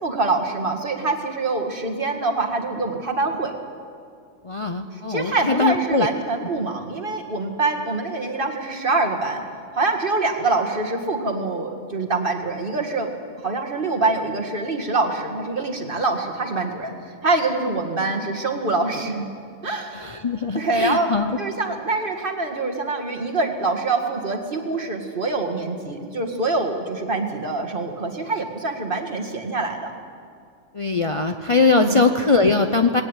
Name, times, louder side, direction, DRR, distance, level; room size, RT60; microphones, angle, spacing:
voice 1, 0.0-3.5 4.9-9.4 9.8-13.1 13.4-16.9 17.2-19.3 19.6-20.1 20.5-21.1 21.4-29.9 31.7-32.0, right 3 dB, 45° right, 3 dB, 2.1 m, -25 dB
voice 2, 4.4-6.1 19.9-21.4 30.7-33.0, left 3 dB, 30° left, 6 dB, 0.7 m, -21 dB
19.5 x 18.0 x 9.0 m, 2.3 s
omnidirectional pair, 1.3 m